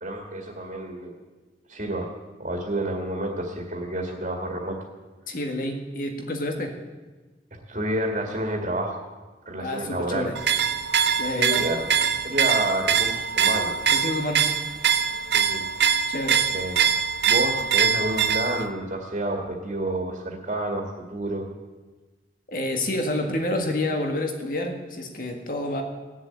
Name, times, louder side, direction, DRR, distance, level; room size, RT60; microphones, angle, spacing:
voice 1, 0.0-1.2 1.7-2.1 2.4-4.8 7.7-9.1 9.5-10.3 11.4-11.9 12.2-13.7 15.3-15.6 16.5-16.8 17.3-21.5, right 1 dB, 40° right, 1 dB, 2.0 m, -29 dB
voice 2, 5.3-6.8 9.6-10.4 11.2-11.7 13.9-14.5 16.1-16.4 22.5-25.8, left 1 dB, 50° left, 4 dB, 1.9 m, -28 dB
sound 1, 10.4-18.7, right 7 dB, 70° right, 0.8 m, -23 dB
18.0 x 7.3 x 8.6 m, 1.3 s
head